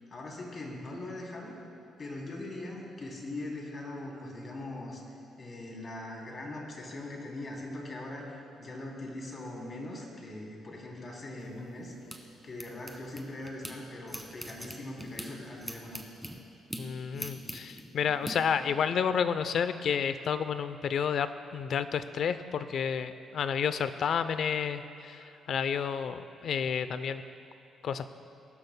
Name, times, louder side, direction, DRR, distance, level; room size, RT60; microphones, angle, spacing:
voice 1, 0.1-1.5 2.0-5.0 5.4-11.9 12.4-16.0, left 2 dB, 40° left, -2 dB, 3.0 m, -41 dB
sound 1, 11.4-13.8 14.1-18.3, equal, ahead, 1.4 m, -43 dB
voice 2, 16.8-27.2 27.8-28.1, left 7 dB, 65° left, 12 dB, 0.5 m, -30 dB
21.0 x 12.0 x 2.2 m, 2.9 s
cardioid pair, 90°, 0 cm